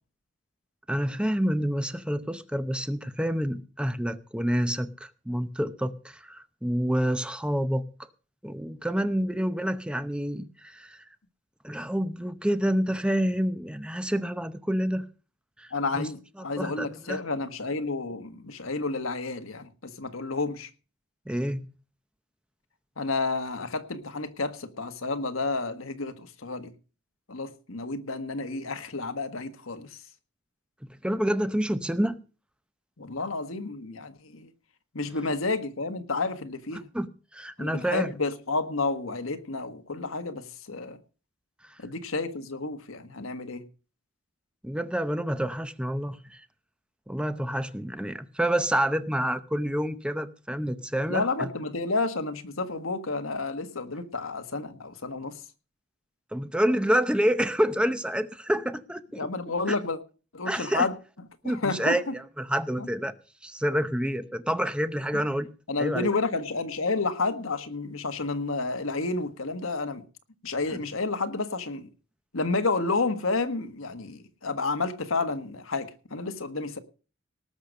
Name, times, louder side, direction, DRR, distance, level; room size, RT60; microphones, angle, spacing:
voice 1, 0.9-7.8 8.4-11.0 11.6-15.0 15.6-16.1 16.6-17.2 21.3-21.7 30.8-32.2 36.9-37.1 37.3-38.1 41.6-41.8 44.6-46.4 47.1-51.5 56.3-59.3 59.7-59.8 60.5-60.9 61.4-63.1 63.4-65.5 65.8-66.1 70.7-70.8, equal, 5° right, 0.7 m, -28 dB
voice 2, 15.7-20.7 23.0-26.7 27.3-30.0 33.0-34.5 34.9-36.9 37.6-41.0 41.8-43.6 51.1-55.4 59.2-60.0 60.3-60.9 61.4-62.1 62.8-62.9 65.1-65.2 65.7-70.0 70.4-71.9 72.3-76.8, left 3 dB, 85° left, 1.5 m, -30 dB
18.5 x 6.7 x 6.5 m
head